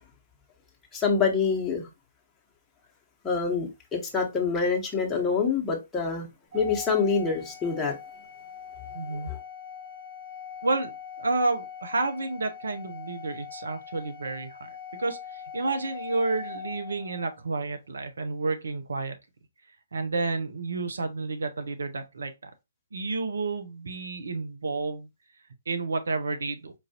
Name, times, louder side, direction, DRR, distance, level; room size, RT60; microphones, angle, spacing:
voice 1, 0.9-1.9 3.2-6.3 6.5-8.0 9.3-9.4, left 5 dB, 15° left, 1.1 m, -26 dB
Organ, 6.5-17.4, left 7 dB, 40° right, 1.9 m, -42 dB
voice 2, 8.9-9.3 10.6-19.1 19.9-22.5 22.9-25.1 25.7-26.7, right 3 dB, 65° right, 0.7 m, -30 dB
4.6 x 2.5 x 2.8 m
figure-of-eight pair, 130°, 0 cm